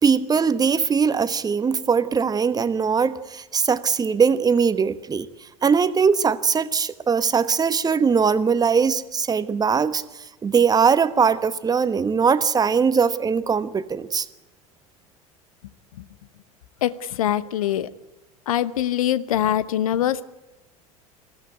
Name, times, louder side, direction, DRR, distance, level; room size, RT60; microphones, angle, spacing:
voice 1, 0.0-5.3 5.6-10.0 10.4-14.3, right 6 dB, 20° right, 1.1 m, -20 dB
voice 2, 16.8-17.9 18.5-20.2, left 11 dB, 65° left, 1.0 m, -23 dB
22.0 x 15.5 x 9.5 m
figure-of-eight pair, 75°, 19 cm